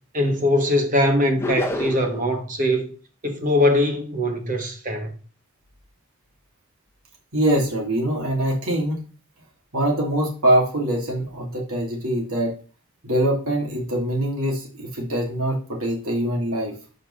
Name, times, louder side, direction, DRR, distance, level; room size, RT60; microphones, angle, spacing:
voice 1, 0.1-2.9 3.2-5.1, left 1 dB, 35° right, 1.4 m, -21 dB
sound 1, 1.4-2.3, left 2 dB, 10° left, 1.0 m, -27 dB
voice 2, 7.3-9.0 9.7-12.5 13.0-16.7, right 1 dB, 80° right, 2.4 m, -23 dB
5.6 x 5.5 x 6.2 m
head